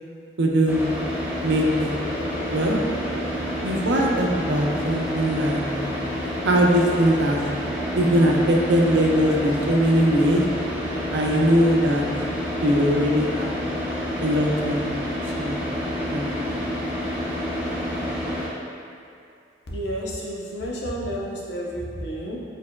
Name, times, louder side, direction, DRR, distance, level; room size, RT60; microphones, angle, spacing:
voice 1, 0.4-0.9 1.4-1.9 2.5-2.8 3.6-6.0 6.4-7.4 7.9-10.4 11.1-12.0 12.6-13.5 14.2-14.9 15.4-15.6 16.1-16.7, equal, 90° right, -1 dB, 0.5 m, -21 dB
Car / Idling, 0.7-18.5, equal, 10° right, 0.6 m, -28 dB
voice 2, 19.7-22.4, equal, 75° left, -4 dB, 0.7 m, -31 dB
4.4 x 3.4 x 2.2 m, 2.4 s
head